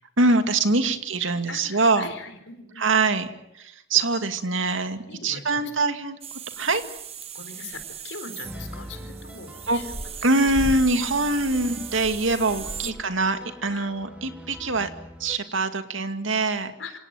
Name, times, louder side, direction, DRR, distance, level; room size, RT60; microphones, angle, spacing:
voice 1, 0.2-2.1 2.8-6.2 6.6-6.8 9.7-9.8 10.2-14.9 15.2-16.7, right 3 dB, 85° right, 8 dB, 2.3 m, -24 dB
voice 2, 1.5-2.9 5.1-5.7 7.3-10.0 10.4-10.5 12.6-12.9 13.7-13.9 16.8-17.0, left 4 dB, 75° left, 8 dB, 4.4 m, -41 dB
sound 1, 6.2-12.9, right 5 dB, 30° right, 1.4 m, -37 dB
sound 2, 8.4-15.4, equal, 5° right, 2.3 m, -43 dB
27.0 x 18.0 x 9.3 m, 0.84 s
head